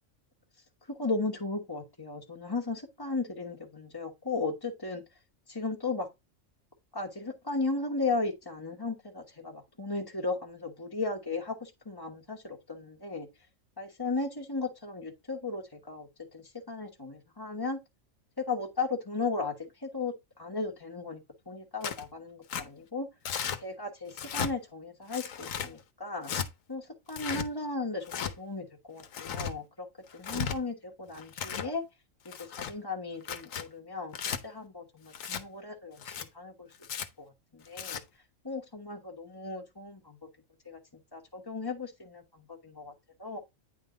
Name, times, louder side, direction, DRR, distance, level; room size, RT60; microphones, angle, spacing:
voice 1, 0.9-5.0 5.5-6.1 6.9-13.3 13.8-17.8 18.4-21.2 21.5-23.1 23.6-26.3 26.7-29.9 30.1-31.8 32.2-34.1 34.4-36.7 37.2-38.0 38.4-40.2 40.6-40.8 41.1-42.9 43.2-43.4, left 3 dB, 20° left, 1.3 m, -36 dB
Tearing, 21.8-22.1 22.5-22.6 23.3-23.6 24.1-24.5 25.1-25.7 26.2-26.5 27.1-27.5 28.1-28.3 29.0-29.5 30.1-30.6 31.1-31.7 32.3-32.7 33.2-33.6 34.1-34.4 35.1-35.4 36.0-36.3 36.8-37.1 37.7-38.0, left 7 dB, 85° left, 1.3 m, -35 dB
9.8 x 3.8 x 3.8 m
omnidirectional pair, 1.3 m